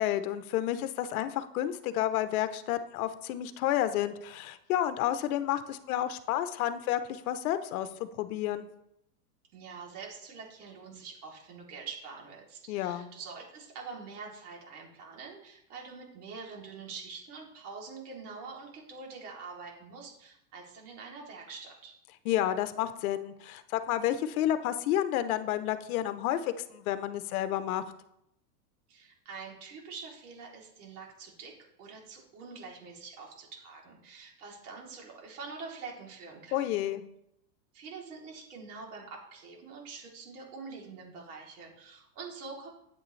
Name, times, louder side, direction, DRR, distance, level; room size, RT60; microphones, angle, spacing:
voice 1, 0.0-8.7 12.7-13.1 22.2-27.8 36.5-37.0, left 12 dB, 60° left, 12 dB, 0.9 m, -30 dB
voice 2, 9.5-21.9 28.9-36.7 37.7-42.7, right 4 dB, 60° right, -2 dB, 3.2 m, -45 dB
8.6 x 7.8 x 3.2 m, 0.78 s
supercardioid pair, 135°, 49 cm